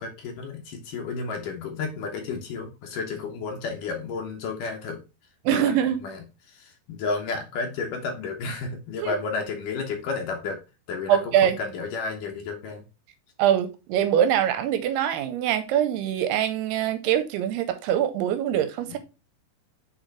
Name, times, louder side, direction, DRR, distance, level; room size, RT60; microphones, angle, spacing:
voice 1, 0.0-5.0 5.5-5.7 6.0-10.6 10.9-12.8, left 4 dB, 75° left, 2.0 m, -32 dB
voice 2, 5.5-6.0 9.0-9.1 11.1-11.6 13.4-19.0, right 10 dB, 80° right, 2.5 m, -23 dB
8.3 x 3.8 x 3.3 m
omnidirectional pair, 5.1 m